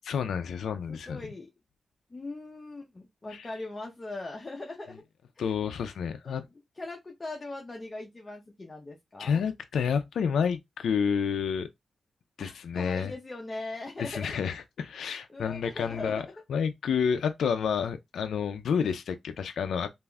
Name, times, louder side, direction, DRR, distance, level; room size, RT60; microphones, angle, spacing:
voice 1, 0.0-1.2 3.3-3.5 5.4-6.4 9.2-11.7 12.4-13.1 14.0-16.2 16.5-19.9, left 7 dB, 90° left, 0.3 m, -29 dB
voice 2, 0.9-1.5 2.1-5.0 5.4-5.5 6.2-6.5 6.8-9.4 12.4-14.5 14.9-16.3 17.1-17.2, left 2 dB, 30° left, 0.6 m, -40 dB
3.3 x 2.4 x 2.2 m
cardioid pair, 85°, 0 cm